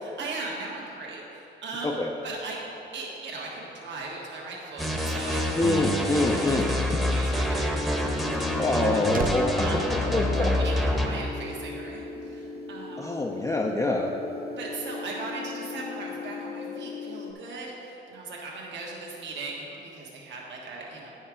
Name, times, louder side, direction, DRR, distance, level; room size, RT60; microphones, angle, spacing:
voice 1, 0.0-2.6 2.9-5.6 6.1-6.2 6.7-6.8 7.1-9.0 9.6-9.9 10.4-13.3 14.6-21.1, right 3 dB, 65° right, -3 dB, 1.6 m, -38 dB
sound 1, 4.8-11.1, equal, ahead, 1.0 m, -27 dB
voice 2, 5.6-6.7 8.6-9.8 10.1-10.5 13.0-14.1, left 2 dB, 15° left, 0 dB, 0.5 m, -25 dB
sound 2, 7.7-17.3, left 4 dB, 50° left, 0.8 m, -38 dB
sound 3, 8.6-11.1 11.3-11.6, right 4 dB, 45° right, 0.5 m, -37 dB
9.6 x 5.5 x 4.9 m, 3.0 s
cardioid pair, 90°, 20 cm